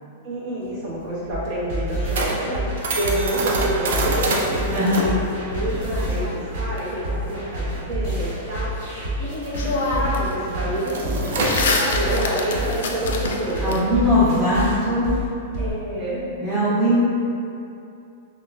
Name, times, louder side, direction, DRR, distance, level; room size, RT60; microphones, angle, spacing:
voice 1, 0.2-13.9 15.6-16.8, right 1 dB, 40° right, -8 dB, 0.8 m, -28 dB
sound 1, 0.6-9.6 9.8-10.1 10.4-16.1, right 2 dB, 75° right, 0.4 m, -28 dB
sound 2, 1.3-15.7, right 1 dB, 55° right, 1.3 m, -28 dB
voice 2, 4.7-5.1 13.6-15.2 16.4-17.0, left 1 dB, 10° right, -13 dB, 0.6 m, -20 dB
sound 3, 5.5-6.8 9.0-9.1 9.5-10.3 10.6-13.8, left 3 dB, 80° left, 0.3 m, -27 dB
3.7 x 2.0 x 2.2 m, 2.6 s
supercardioid pair, 150°, 0 cm